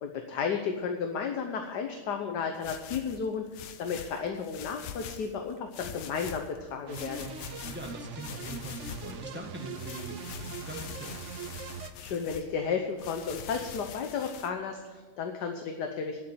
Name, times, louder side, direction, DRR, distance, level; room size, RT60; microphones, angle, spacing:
voice 1, 0.0-3.5 3.8-7.3 12.0-16.2, left 6 dB, 60° left, 4 dB, 1.4 m, -33 dB
sound 1, 2.5-5.3 5.7-6.6 6.9-9.2 9.6-12.5 13.0-14.5, left 9 dB, 80° left, 1.6 m, -44 dB
sound 2, 6.9-11.9, right 6 dB, 90° right, 0.6 m, -41 dB
voice 2, 7.7-11.3, right 1 dB, 5° right, 1 dB, 1.4 m, -42 dB
10.0 x 8.2 x 9.0 m, 1.4 s
omnidirectional pair, 2.3 m